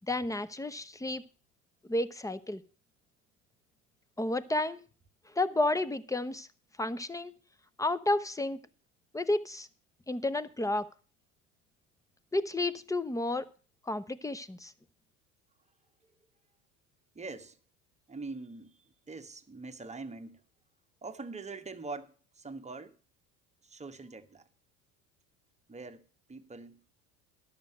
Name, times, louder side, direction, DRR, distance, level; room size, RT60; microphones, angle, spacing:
voice 1, 0.1-1.2 1.8-2.6 4.2-4.8 5.3-6.5 6.8-7.4 7.8-8.6 9.1-9.7 10.1-10.9 12.3-13.5 13.9-14.7, left 2 dB, 10° left, 0.8 m, -31 dB
voice 2, 17.1-17.6 18.1-20.4 21.0-23.0 23.6-24.5 25.7-26.0 26.3-26.8, right 3 dB, 15° right, 1.2 m, -43 dB
12.0 x 6.7 x 7.6 m
hypercardioid pair, 75°, 43 cm